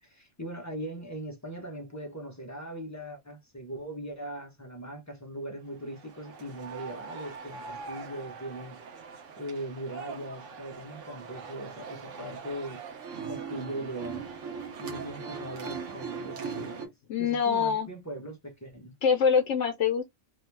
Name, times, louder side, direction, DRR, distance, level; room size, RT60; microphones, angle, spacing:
voice 1, 0.0-8.8 9.4-12.8 13.3-14.2 14.7-16.9 17.2-18.9, right 1 dB, 25° left, 0.3 m, -40 dB
sound 1, 5.8-16.9, right 5 dB, 80° right, 1.0 m, -40 dB
voice 2, 17.1-17.9 19.0-20.0, left 6 dB, 70° left, 0.9 m, -24 dB
2.7 x 2.2 x 3.1 m
omnidirectional pair, 1.2 m